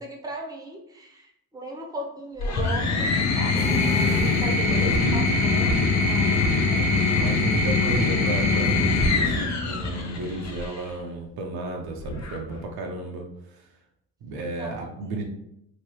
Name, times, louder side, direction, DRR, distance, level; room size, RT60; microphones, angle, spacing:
voice 1, 0.0-3.6 4.1-6.9 8.0-8.2 14.6-15.2, right 1 dB, 10° right, -1 dB, 0.9 m, -37 dB
sound 1, 2.4-10.8 12.0-12.6, left 3 dB, 40° left, 0.8 m, -23 dB
sound 2, 3.6-5.1, left 1 dB, 15° left, 0.3 m, -35 dB
voice 2, 4.7-5.4 7.2-13.3 14.2-15.2, right 2 dB, 60° right, 1 dB, 0.8 m, -33 dB
3.0 x 2.7 x 3.0 m, 0.77 s
hypercardioid pair, 60°, 42 cm